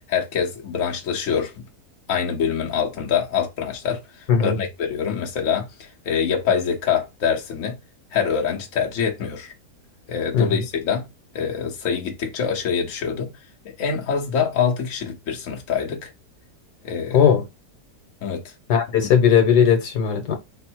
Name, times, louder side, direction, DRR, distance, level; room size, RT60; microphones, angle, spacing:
voice 1, 0.1-1.6 2.1-4.0 4.4-7.8 8.1-9.5 10.1-11.1 11.3-13.3 13.6-16.1 16.8-17.2 18.2-18.4, left 7 dB, 55° left, 1.3 m, -25 dB
voice 2, 17.1-17.4 18.7-20.3, left 7 dB, 85° left, 1.5 m, -17 dB
4.5 x 2.0 x 4.5 m
omnidirectional pair, 1.7 m